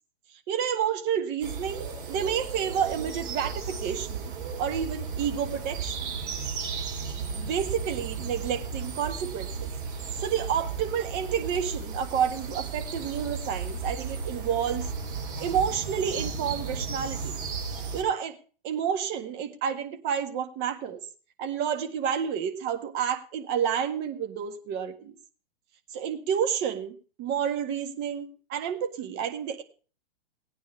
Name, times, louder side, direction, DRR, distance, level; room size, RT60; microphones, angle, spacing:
voice 1, 0.5-6.1 7.3-9.7 10.2-14.9 15.4-17.4 17.9-18.4 18.6-21.0 21.4-25.2 25.9-29.6, right 8 dB, 35° right, 6 dB, 1.7 m, -30 dB
sound 1, 1.4-18.0, right 5 dB, 60° right, 5.8 m, -35 dB
18.0 x 9.5 x 3.3 m, 0.38 s
hypercardioid pair, 115°, 30 cm